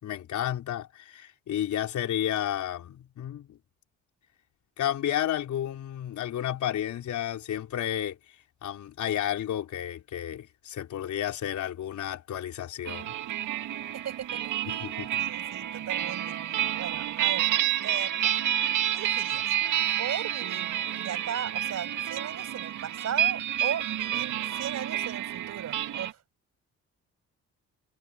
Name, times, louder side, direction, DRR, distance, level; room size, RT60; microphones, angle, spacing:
voice 1, 0.0-3.6 4.8-8.2 8.6-13.1 14.7-15.2, left 11 dB, 70° left, 4.2 m, -32 dB
sound 1, 12.9-26.1, right 11 dB, 80° right, 2.2 m, -29 dB
voice 2, 13.9-14.8 15.2-16.4 16.8-17.5 17.8-18.3 18.9-19.6 20.0-20.7 21.0-26.2, right 9 dB, 60° right, 7.0 m, -37 dB
cardioid pair, 90°, 30 cm